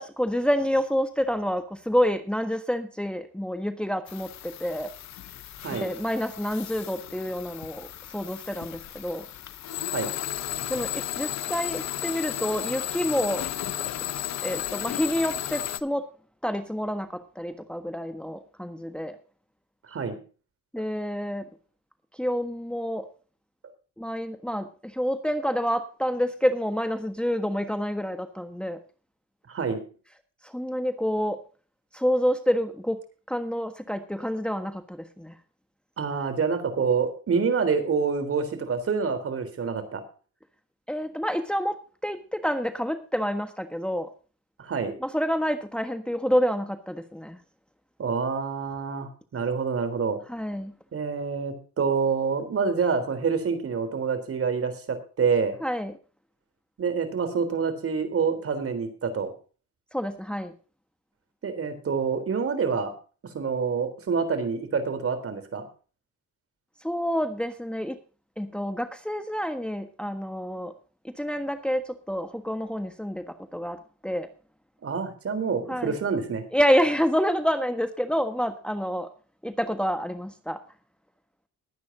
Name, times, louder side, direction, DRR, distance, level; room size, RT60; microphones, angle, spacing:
voice 1, 0.0-4.9 5.7-9.3 10.7-13.5 14.0-16.0 16.4-19.2 20.7-21.5 22.2-23.0 24.0-28.8 30.4-31.4 31.9-33.0 33.3-35.3 40.9-44.1 45.0-47.4 50.3-50.7 55.6-55.9 59.9-60.5 66.8-68.0 68.4-70.7 71.0-74.3 75.7-76.0 76.5-79.1 79.4-80.6, equal, 5° left, 8 dB, 1.4 m, -28 dB
sound 1, 4.1-15.8, left 11 dB, 65° left, 1.0 m, -34 dB
voice 2, 19.9-20.2 29.5-29.8 36.0-40.0 44.6-44.9 48.0-50.2 50.9-55.6 56.8-59.3 61.4-62.9 63.2-65.6 74.8-76.4, right 5 dB, 50° right, 9 dB, 3.8 m, -27 dB
21.0 x 9.3 x 2.8 m, 0.37 s
cardioid pair, 90°, 30 cm